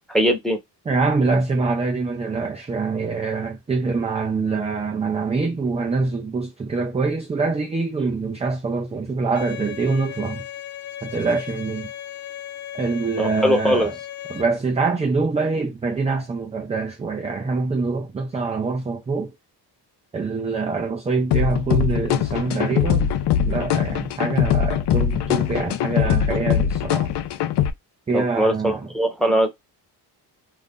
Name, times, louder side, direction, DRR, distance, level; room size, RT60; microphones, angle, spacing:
voice 1, 0.1-0.6 13.2-13.9 28.1-29.5, equal, ahead, 0.8 m, -20 dB
voice 2, 0.9-10.4 11.0-11.9 12.7-13.9 14.3-19.3 20.1-23.1 23.4-27.1 28.1-28.9, right 4 dB, 15° right, 0.3 m, -24 dB
Bowed string instrument, 9.3-14.4, left 12 dB, 40° left, 1.0 m, -36 dB
sound 1, 21.3-27.7, left 9 dB, 65° left, 0.5 m, -22 dB
2.6 x 2.4 x 3.5 m
cardioid pair, 115°, 44 cm